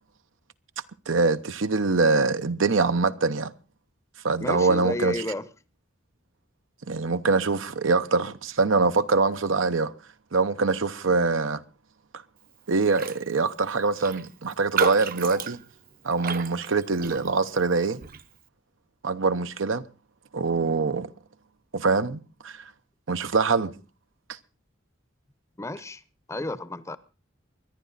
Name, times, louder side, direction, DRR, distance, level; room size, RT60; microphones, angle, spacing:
voice 1, 1.1-3.5 4.2-5.2 6.9-9.9 10.3-11.6 12.7-15.6 16.0-18.0 19.0-19.8 20.3-21.1 21.7-22.6 23.1-23.7, right 4 dB, 90° right, 0.9 m, -24 dB
voice 2, 4.4-5.5 25.6-26.0 26.3-27.0, left 1 dB, 15° left, 0.7 m, -32 dB
Raindrop, 12.9-13.2 13.5-13.6 14.0-17.6 18.0-18.3, right 6 dB, 50° right, 0.7 m, -32 dB
24.0 x 10.5 x 4.0 m
head